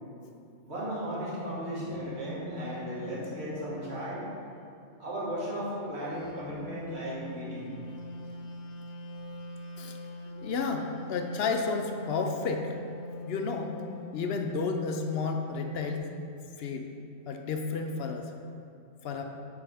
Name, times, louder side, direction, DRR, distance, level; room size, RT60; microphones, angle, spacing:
voice 1, 0.6-4.3 5.0-7.8 10.3-10.4, right 1 dB, 55° right, -8 dB, 2.1 m, -36 dB
sound 1, 1.2-4.1 5.7-16.0, left 1 dB, 85° left, 1.0 m, -43 dB
voice 2, 10.4-12.7 13.3-13.8 14.1-16.0 16.6-16.9 17.3-18.3 19.0-19.2, left 4 dB, 60° left, 4 dB, 0.7 m, -31 dB
8.4 x 4.8 x 3.4 m, 2.5 s
omnidirectional pair, 1.3 m